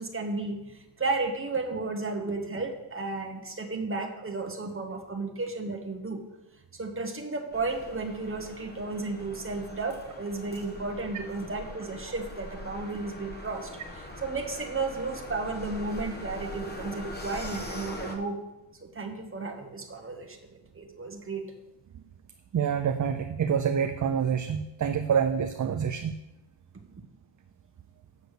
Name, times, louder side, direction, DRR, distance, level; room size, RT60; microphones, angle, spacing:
voice 1, 0.0-6.2 6.7-18.4 18.8-21.5, right 3 dB, 30° right, 3 dB, 1.3 m, -33 dB
sound 1, 7.5-18.2, left 1 dB, 20° left, 1.3 m, -42 dB
voice 2, 22.5-26.2, right 7 dB, 45° right, 8 dB, 0.5 m, -27 dB
8.2 x 6.8 x 6.6 m, 0.99 s
wide cardioid pair, 130°, 44 cm